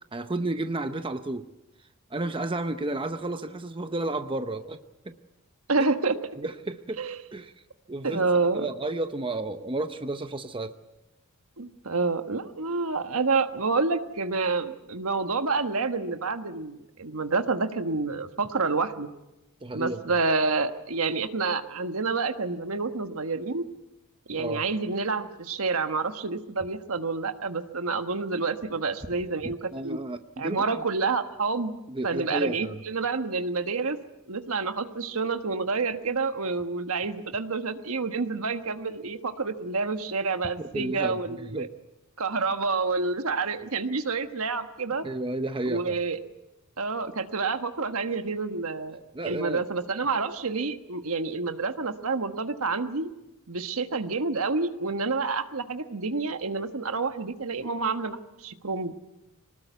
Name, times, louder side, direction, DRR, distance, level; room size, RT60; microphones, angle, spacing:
voice 1, 0.1-1.5 2.1-4.8 5.1-5.2 5.8-5.9 6.4-7.0 7.3-7.5 7.9-8.2 8.5-10.7 19.6-20.0 24.4-24.6 29.4-30.6 31.9-32.8 40.6-41.7 45.0-46.0 49.1-49.6, right 2 dB, 25° right, 8 dB, 0.8 m, -32 dB
voice 2, 5.7-6.2 7.0-7.2 8.0-8.7 11.6-19.1 19.7-23.7 24.3-30.0 30.4-31.7 32.0-34.0 34.3-41.7 42.2-45.1 45.6-46.2 46.8-53.1 53.5-59.0, right 4 dB, 70° right, 8 dB, 1.4 m, -28 dB
24.5 x 19.5 x 8.2 m, 0.95 s
head